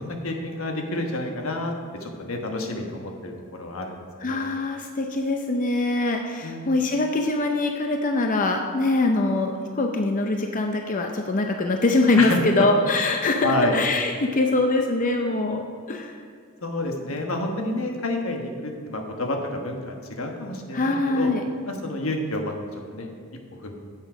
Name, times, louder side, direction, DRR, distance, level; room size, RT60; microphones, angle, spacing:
voice 1, 0.0-4.4 6.4-6.8 12.2-12.7 13.4-13.8 16.6-21.3 21.7-23.1 23.6-23.7, left 2 dB, 80° left, 3 dB, 1.3 m, -29 dB
voice 2, 4.2-16.2 20.7-21.4, left 2 dB, 40° left, 3 dB, 0.6 m, -23 dB
9.4 x 7.6 x 5.0 m, 2.2 s
head